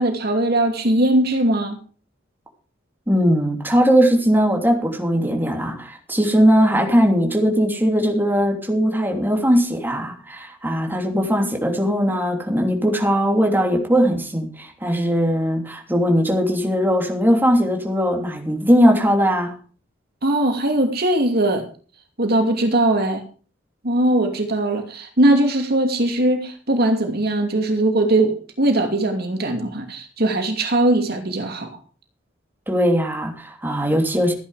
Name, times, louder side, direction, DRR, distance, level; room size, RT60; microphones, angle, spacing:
voice 1, 0.0-1.8 20.2-21.7 22.2-23.2 23.8-31.7, right 1 dB, 55° right, 4 dB, 2.7 m, -20 dB
voice 2, 3.1-19.5 32.7-34.3, equal, 10° right, 2 dB, 3.1 m, -19 dB
14.5 x 10.5 x 5.0 m, 0.39 s
head